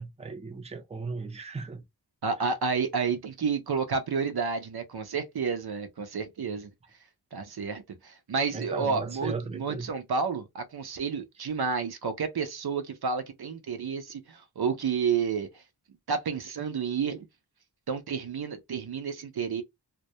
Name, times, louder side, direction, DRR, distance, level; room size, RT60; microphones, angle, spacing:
voice 1, 0.0-1.8 8.5-9.9, right 4 dB, 15° right, 0.5 m, -36 dB
voice 2, 2.2-6.7 7.3-15.5 16.1-17.3 17.9-19.6, right 5 dB, 65° right, 0.5 m, -30 dB
2.1 x 2.1 x 2.7 m
wide cardioid pair, 45°, 41 cm